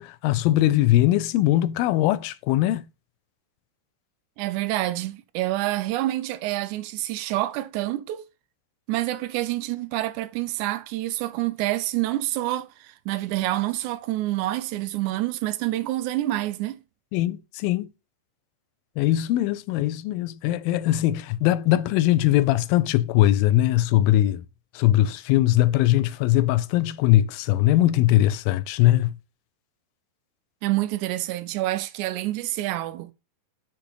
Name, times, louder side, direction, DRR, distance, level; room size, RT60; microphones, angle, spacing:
voice 1, 0.0-2.9 17.1-17.9 19.0-24.4 24.8-29.1, left 14 dB, 90° left, 2.3 m, -21 dB
voice 2, 4.4-8.2 8.9-16.8 30.6-33.1, right 16 dB, 80° right, 1.8 m, -27 dB
5.2 x 5.0 x 4.7 m
omnidirectional pair, 4.0 m